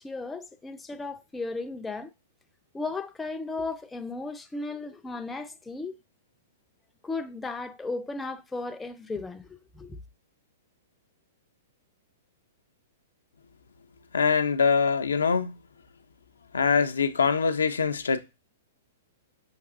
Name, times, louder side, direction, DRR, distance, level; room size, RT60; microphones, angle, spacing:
voice 1, 0.0-2.1 2.7-6.0 7.0-10.0, left 3 dB, 10° left, 0.4 m, -35 dB
voice 2, 14.1-15.6 16.5-18.2, left 5 dB, 85° left, 0.4 m, -23 dB
6.0 x 2.8 x 2.4 m
hypercardioid pair, 120°, 0 cm